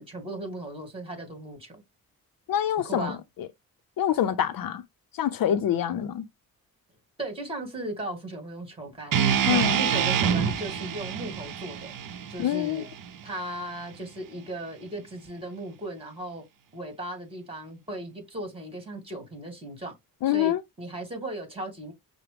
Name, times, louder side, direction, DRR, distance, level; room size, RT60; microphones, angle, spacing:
voice 1, 0.0-1.8 2.8-3.2 7.2-9.2 9.5-11.9 12.3-12.9 13.2-16.4 16.7-20.0 20.3-21.9, right 1 dB, 15° right, 2.1 m, -37 dB
voice 2, 2.5-3.1 4.0-4.8 5.1-6.2 9.5-9.8 12.4-12.8 20.2-20.6, left 10 dB, 65° left, 0.5 m, -25 dB
sound 1, 9.1-13.3, right 8 dB, 60° right, 0.7 m, -26 dB
5.7 x 2.1 x 3.4 m
cardioid pair, 100°, 37 cm